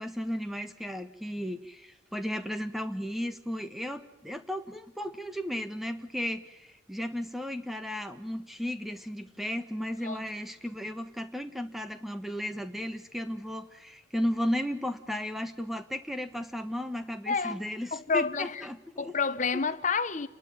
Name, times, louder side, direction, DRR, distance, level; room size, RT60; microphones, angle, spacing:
voice 1, 0.0-19.1, equal, ahead, 1.4 m, -34 dB
voice 2, 17.3-17.6 17.9-18.6 19.0-20.3, left 4 dB, 40° left, 1.1 m, -29 dB
29.0 x 12.0 x 8.9 m
head